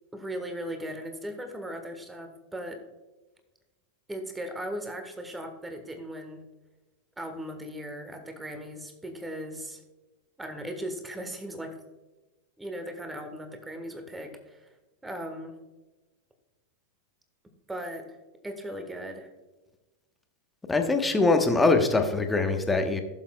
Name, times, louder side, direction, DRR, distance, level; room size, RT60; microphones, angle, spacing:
voice 1, 0.1-2.8 4.1-6.4 7.2-9.8 10.4-11.7 12.6-14.7 15.0-15.5 17.7-18.2 18.4-19.3, equal, 10° right, 5 dB, 1.4 m, -38 dB
voice 2, 20.7-23.0, left 3 dB, 10° left, 5 dB, 1.1 m, -23 dB
15.5 x 7.2 x 2.3 m, 1.1 s
figure-of-eight pair, 90°, 0 cm